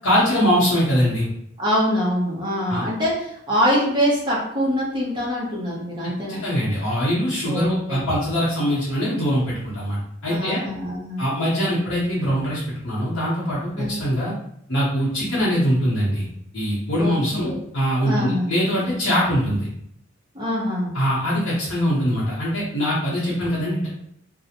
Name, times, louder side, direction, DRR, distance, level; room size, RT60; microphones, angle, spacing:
voice 1, 0.0-1.3 2.7-2.8 6.0-10.6 11.2-14.3 14.7-16.2 16.5-19.7 20.9-23.9, equal, 70° left, -8 dB, 0.8 m, -22 dB
voice 2, 1.6-6.4 7.4-8.0 10.3-11.2 13.7-13.9 16.9-17.6 18.0-18.5 20.3-20.9, equal, 25° right, -5 dB, 0.7 m, -24 dB
2.4 x 2.1 x 2.8 m, 0.71 s
head